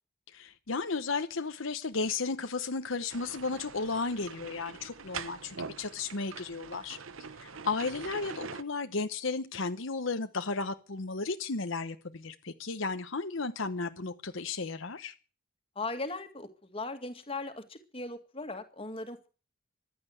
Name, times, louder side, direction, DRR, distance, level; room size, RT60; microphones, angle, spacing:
voice 1, 0.3-7.0 7.4-15.2, left 4 dB, 65° left, 1.0 m, -34 dB
sound 1, 3.1-8.6, right 5 dB, 70° right, 1.0 m, -44 dB
voice 2, 15.8-19.3, left 3 dB, 25° left, 2.1 m, -38 dB
15.0 x 11.5 x 7.9 m
head